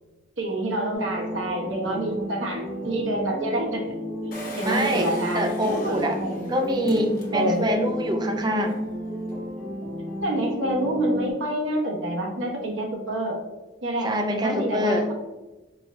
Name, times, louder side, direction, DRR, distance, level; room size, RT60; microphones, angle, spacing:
voice 1, 0.4-3.9 4.2-4.3 4.6-6.5 7.3-7.6 10.2-13.4 13.8-15.1, right 1 dB, 80° right, -1 dB, 1.1 m, -27 dB
sound 1, 0.9-11.3, equal, 5° right, 1.4 m, -33 dB
Engine, 4.3-7.8 8.2-8.3 8.5-8.6, equal, 50° left, 1.0 m, -38 dB
voice 2, 4.7-6.2 6.5-8.8 14.0-15.1, equal, 20° right, 5 dB, 0.4 m, -25 dB
4.7 x 3.3 x 2.6 m, 1.1 s
head